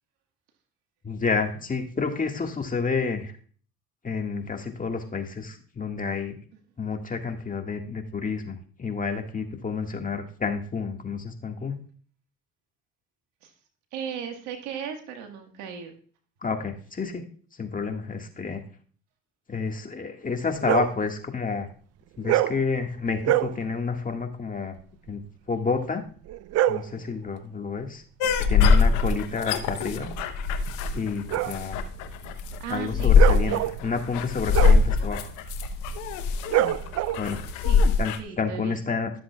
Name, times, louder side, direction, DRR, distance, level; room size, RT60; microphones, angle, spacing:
voice 1, 1.0-3.3 4.0-6.3 6.8-11.9 16.4-17.2 17.6-18.6 19.5-21.7 22.2-24.8 25.1-25.2 25.5-26.0 26.7-28.0 28.5-30.1 30.9-31.8 32.7-35.3 37.2-37.4 38.0-39.1, left 4 dB, 30° left, 4 dB, 1.7 m, -30 dB
voice 2, 13.9-15.9 32.6-33.6 37.6-37.9 38.2-38.7, right 7 dB, 85° right, 5 dB, 1.6 m, -36 dB
sound 1, 20.6-21.0 22.2-22.6 23.2-23.6 26.3-27.0 29.5-37.5, right 14 dB, 60° right, 0.5 m, -27 dB
sound 2, 28.2-38.2, left 5 dB, 85° left, 1.0 m, -22 dB
13.0 x 7.5 x 2.3 m, 0.43 s
supercardioid pair, 70°, 29 cm